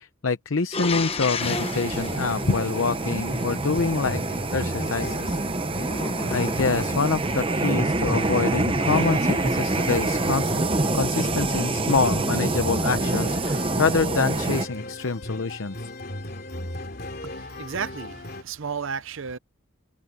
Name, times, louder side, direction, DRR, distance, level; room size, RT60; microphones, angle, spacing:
voice 1, 0.0-4.2 4.5-5.4 6.3-10.6 10.9-15.9, left 4 dB, 70° left, 0.8 m, -26 dB
sound 1, 0.7-3.4 5.8-7.3, left 4 dB, 25° left, 1.1 m, -32 dB
sound 2, 1.4-14.7, right 2 dB, 25° right, 0.7 m, -26 dB
sound 3, 2.0-18.4, left 1 dB, 45° left, 3.4 m, -37 dB
voice 2, 17.2-19.4, right 6 dB, 65° right, 0.6 m, -33 dB
head